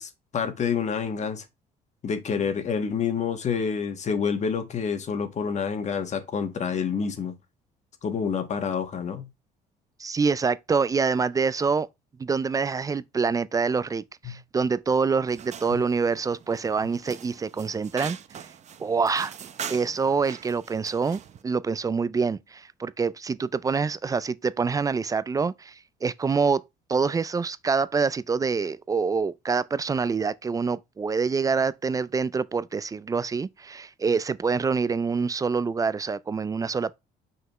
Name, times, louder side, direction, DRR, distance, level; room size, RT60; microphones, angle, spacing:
voice 1, 0.0-1.4 2.0-7.3 8.0-9.3 14.2-14.4, left 6 dB, 45° left, 1.5 m, -28 dB
voice 2, 10.0-11.9 12.2-18.2 18.8-19.3 19.7-25.7 26.0-26.6 26.9-36.9, right 5 dB, 20° right, 0.4 m, -26 dB
sound 1, 15.3-21.4, right 8 dB, 45° right, 0.7 m, -42 dB
5.7 x 5.5 x 3.1 m
cardioid pair, 110°, 17 cm